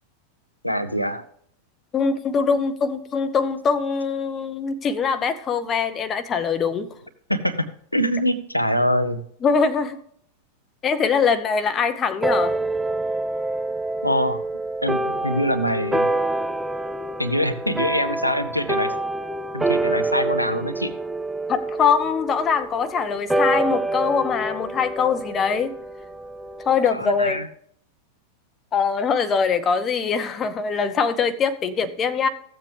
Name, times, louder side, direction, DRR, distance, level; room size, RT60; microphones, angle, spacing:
voice 1, 0.6-1.2 7.3-9.2 14.0-14.4 14.8-16.1 17.2-18.9 19.5-20.9 26.9-27.5, equal, 90° left, 0.7 m, -24 dB
voice 2, 1.9-6.9 9.4-10.0 10.8-12.5 21.5-25.7 26.7-27.4 28.7-32.3, left 6 dB, 25° left, 0.7 m, -22 dB
sound 1, 12.2-27.0, right 2 dB, 5° right, 0.4 m, -27 dB
15.0 x 7.5 x 3.4 m
figure-of-eight pair, 90°, 0 cm